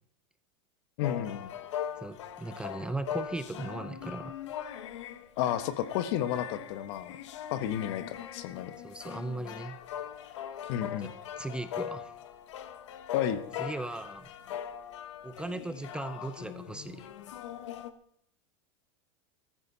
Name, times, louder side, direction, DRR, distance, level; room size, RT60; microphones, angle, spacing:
sound 1, 1.0-17.9, left 10 dB, 90° left, 1.1 m, -41 dB
voice 1, 1.0-1.5 5.4-7.1 7.5-8.7 10.7-11.1 13.1-13.4, left 11 dB, 65° left, 11 dB, 1.3 m, -32 dB
voice 2, 2.0-4.3 8.8-9.8 11.0-11.1 11.4-12.1 13.6-14.3 15.2-17.1, right 2 dB, 5° right, 11 dB, 0.6 m, -38 dB
14.5 x 14.5 x 4.1 m, 0.70 s
supercardioid pair, 130°, 15 cm